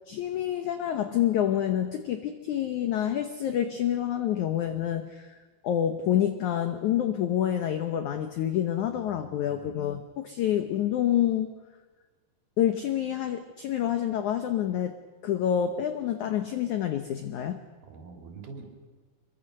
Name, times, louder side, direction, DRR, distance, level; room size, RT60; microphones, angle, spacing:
voice 1, 0.1-5.4 5.6-11.5 12.6-14.9 15.2-17.6, left 10 dB, 80° left, 8 dB, 1.7 m, -27 dB
voice 2, 8.9-9.8 17.9-18.6, right 4 dB, 60° right, 3 dB, 4.9 m, -46 dB
24.5 x 22.5 x 6.7 m, 1.3 s
omnidirectional pair, 4.9 m